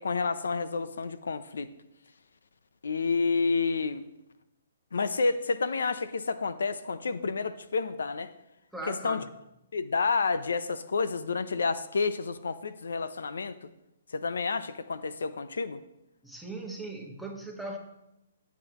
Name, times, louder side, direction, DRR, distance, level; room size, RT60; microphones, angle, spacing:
voice 1, 0.0-1.7 2.8-4.1 4.9-8.3 8.9-9.2 9.7-13.6 14.1-15.8, left 4 dB, 80° left, 13 dB, 0.7 m, -29 dB
voice 2, 8.7-9.3 16.2-17.8, right 2 dB, ahead, 1 dB, 1.5 m, -39 dB
16.5 x 8.3 x 3.0 m, 0.87 s
hypercardioid pair, 145°, 0 cm